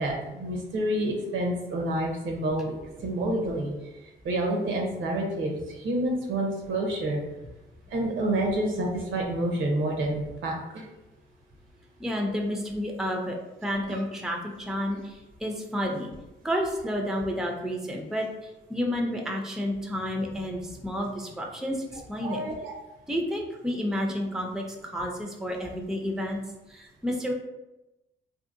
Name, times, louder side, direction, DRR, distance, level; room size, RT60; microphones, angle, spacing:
voice 1, 0.0-2.7 3.0-3.7 4.0-7.2 7.9-10.9 13.9-14.0 22.2-22.7, right 1 dB, 75° right, 1 dB, 0.8 m, -28 dB
voice 2, 12.0-16.1 16.4-22.4 23.1-26.4 26.7-27.3, equal, ahead, 1 dB, 0.4 m, -30 dB
2.9 x 2.7 x 2.5 m, 0.99 s
cardioid pair, 90°, 20 cm